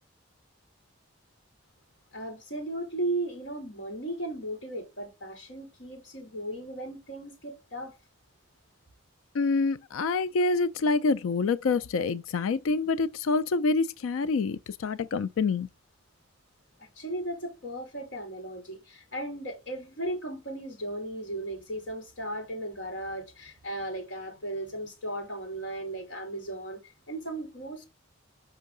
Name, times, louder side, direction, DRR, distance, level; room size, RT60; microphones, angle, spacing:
voice 1, 2.1-7.9 17.0-27.8, right 1 dB, 65° left, 3.0 m, -36 dB
voice 2, 9.3-15.7, left 4 dB, 85° left, 0.4 m, -26 dB
5.6 x 5.4 x 3.8 m
head